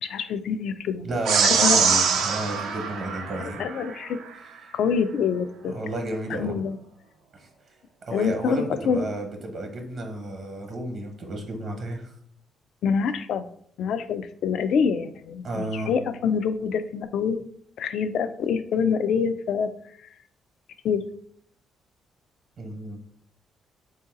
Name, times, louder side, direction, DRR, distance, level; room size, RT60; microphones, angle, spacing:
voice 1, 0.0-1.1 1.4-1.8 3.4-4.2 4.7-5.9 6.3-6.8 8.1-9.1 12.8-13.5 13.8-17.4 17.8-19.7 20.8-21.0, left 6 dB, 75° left, 12 dB, 0.3 m, -26 dB
voice 2, 1.0-3.6 4.6-4.8 5.7-6.6 7.3-7.7 8.1-12.1 15.4-15.9 22.6-23.0, right 1 dB, 55° right, 3 dB, 0.9 m, -32 dB
sound 1, 1.3-3.9, right 6 dB, 85° right, 0.5 m, -23 dB
3.8 x 2.7 x 3.7 m, 0.65 s
cardioid pair, 90°, 0 cm